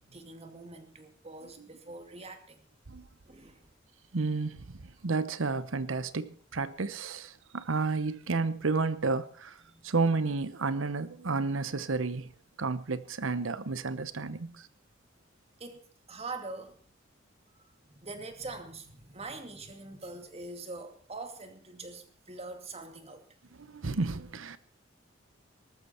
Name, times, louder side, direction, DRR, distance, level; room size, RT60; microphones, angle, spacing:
voice 1, 0.1-2.7 3.3-3.7 9.6-9.9 15.6-16.8 17.6-17.7 18.0-23.3, right 3 dB, 30° right, 2.4 m, -44 dB
voice 2, 4.1-12.3 12.6-14.7 23.6-24.6, right 3 dB, 85° right, 0.9 m, -31 dB
19.0 x 14.0 x 4.4 m
head